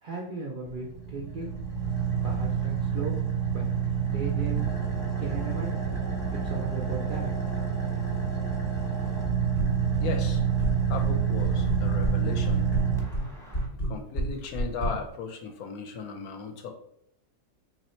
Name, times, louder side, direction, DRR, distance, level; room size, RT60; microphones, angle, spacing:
voice 1, 0.0-1.5 2.2-3.2 3.5-3.7 4.1-4.7 5.2-5.8 6.3-7.3, right 4 dB, 65° right, -2 dB, 0.5 m, -37 dB
Car / Idling, 0.7-13.7, right 7 dB, 5° left, 0.6 m, -28 dB
sound 1, 9.6-10.1 10.3-11.1 11.4-12.2 12.4-14.9, equal, 40° left, 1.2 m, -29 dB
voice 2, 10.0-10.4 10.9-12.7 13.8-16.7, left 5 dB, 70° left, 4 dB, 1.0 m, -36 dB
3.1 x 2.7 x 4.2 m, 0.75 s
omnidirectional pair, 1.7 m